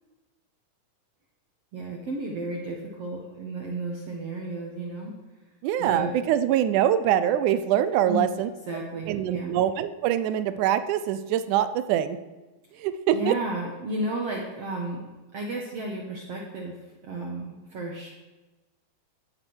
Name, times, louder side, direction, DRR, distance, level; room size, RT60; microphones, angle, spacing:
voice 1, 1.7-5.1 5.8-6.2 8.1-8.2 8.7-9.5 12.7-12.8 13.1-15.0 15.3-16.8 17.0-18.1, right 2 dB, 55° right, 0 dB, 2.0 m, -33 dB
voice 2, 5.6-8.5 9.1-12.2 12.8-13.4, right 10 dB, 75° right, 12 dB, 1.9 m, -24 dB
18.0 x 7.6 x 6.3 m, 1.2 s
omnidirectional pair, 4.2 m